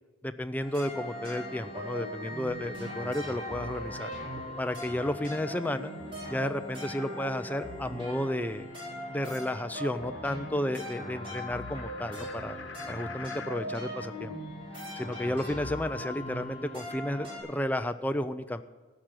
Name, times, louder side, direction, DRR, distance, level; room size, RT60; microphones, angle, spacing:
voice 1, 0.2-4.1 4.6-5.9 6.3-8.7 9.1-12.6 12.9-14.4 15.0-18.6, left 1 dB, 10° left, 9 dB, 0.4 m, -32 dB
sound 1, 0.6-17.4, left 1 dB, 25° right, 4.6 m, -39 dB
sound 2, 7.9-13.7, left 6 dB, 70° left, 1.0 m, -49 dB
14.5 x 6.1 x 9.0 m, 1.3 s
head